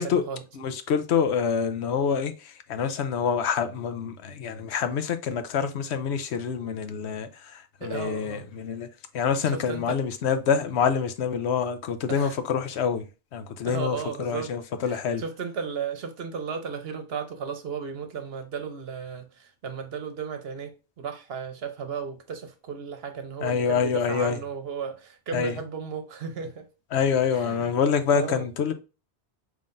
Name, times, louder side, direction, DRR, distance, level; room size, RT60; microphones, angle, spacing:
voice 1, 0.0-0.4 7.8-8.5 9.4-10.0 12.1-12.4 13.6-14.5 14.8-26.7 27.3-27.7 28.1-28.5, right 6 dB, 65° right, 1.0 m, -35 dB
voice 2, 0.6-8.9 9.1-13.0 13.3-15.2 23.4-24.4 25.3-25.5 26.9-28.7, left 7 dB, 75° left, 0.9 m, -26 dB
5.5 x 3.2 x 2.5 m
omnidirectional pair, 1.1 m